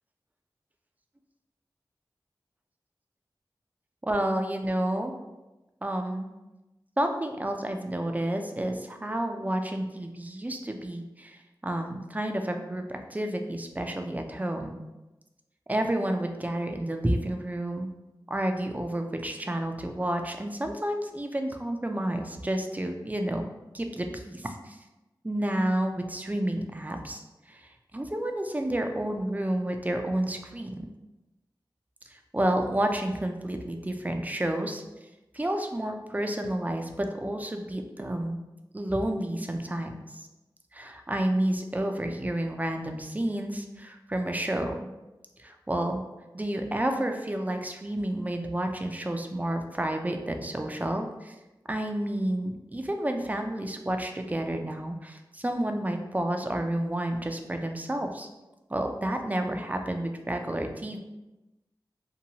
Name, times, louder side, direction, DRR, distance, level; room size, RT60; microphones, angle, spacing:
voice 1, 4.0-5.1 5.8-6.3 7.0-14.8 15.7-17.9 18.3-23.5 23.7-24.8 25.2-27.2 27.5-30.9 32.1-34.8 35.3-38.4 38.7-40.3 40.7-44.7 45.4-46.0 46.3-51.3 51.7-58.3 58.7-61.0, right 1 dB, 20° right, 5 dB, 0.4 m, -30 dB
2.8 x 2.2 x 2.8 m, 1.0 s
cardioid pair, 40°, 8 cm